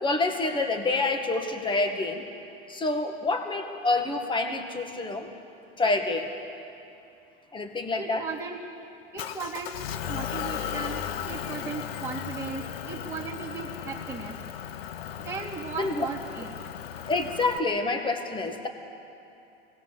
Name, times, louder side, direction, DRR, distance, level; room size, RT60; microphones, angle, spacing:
voice 1, 0.0-2.2 2.7-5.3 5.8-6.3 7.5-8.3 15.8-16.0 17.0-18.7, left 3 dB, 15° left, 5 dB, 2.0 m, -27 dB
voice 2, 8.0-8.6 9.1-9.8 10.1-14.4 15.2-16.5, right 5 dB, 10° right, -7 dB, 2.8 m, -37 dB
Motor vehicle (road) / Engine, 9.2-17.6, left 9 dB, 80° left, 1.1 m, -36 dB
24.0 x 19.0 x 7.1 m, 2.7 s
supercardioid pair, 110°, 29 cm